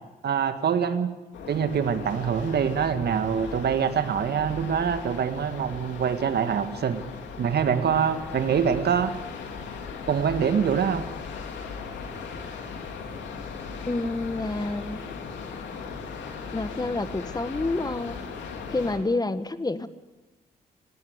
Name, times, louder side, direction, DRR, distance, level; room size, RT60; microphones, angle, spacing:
voice 1, 0.2-1.1 1.5-7.0 7.4-9.1 10.1-11.0, right 7 dB, 60° right, 9 dB, 1.8 m, -24 dB
sound 1, 1.3-19.0, left 5 dB, 75° left, 2.6 m, -38 dB
voice 2, 13.8-15.0 16.5-18.2 18.7-19.9, left 2 dB, 20° left, 12 dB, 1.5 m, -28 dB
19.0 x 17.5 x 8.1 m, 1.1 s
hypercardioid pair, 45°, 19 cm